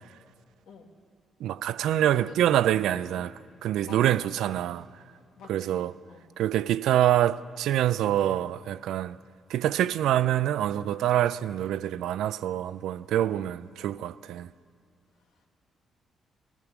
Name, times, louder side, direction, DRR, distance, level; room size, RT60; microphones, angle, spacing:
voice 1, 1.4-3.3 3.6-4.8 5.5-5.9 6.4-9.2 9.5-14.5, right 12 dB, 85° right, 0.3 m, -26 dB
voice 2, 2.0-3.3 3.8-4.5 5.4-6.3 13.1-13.5 15.2-15.5, left 5 dB, 85° left, 1.7 m, -50 dB
16.0 x 14.5 x 6.0 m
cardioid pair, 90°, 0 cm